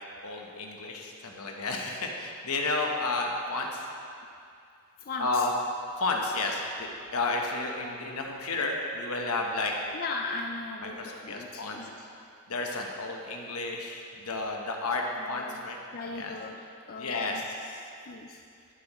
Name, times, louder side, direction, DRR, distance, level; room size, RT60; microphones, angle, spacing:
voice 1, 0.2-3.9 5.2-5.5 6.0-9.7 10.8-11.8 12.5-15.8 16.1-16.3 17.0-17.8, left 3 dB, 80° left, 1 dB, 1.1 m, -32 dB
voice 2, 5.0-5.5 9.9-11.9 15.2-15.6 15.9-17.4 18.1-18.4, left 3 dB, 40° left, 2 dB, 0.4 m, -38 dB
12.5 x 7.8 x 3.1 m, 2.4 s
head